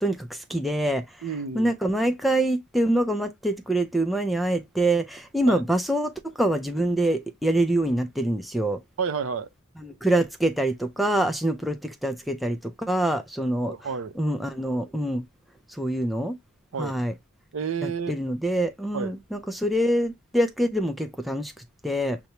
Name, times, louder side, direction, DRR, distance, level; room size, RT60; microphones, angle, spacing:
voice 1, 0.0-1.0 1.5-8.8 9.8-13.7 14.2-15.3 15.7-16.4 16.8-17.1 17.8-22.2, right 1 dB, ahead, 0.4 m, -25 dB
voice 2, 1.2-1.7 5.5-5.6 9.0-9.5 13.7-14.2 16.7-17.0 17.5-18.2 18.9-19.1, right 6 dB, 65° right, 0.6 m, -30 dB
6.6 x 2.2 x 2.9 m
head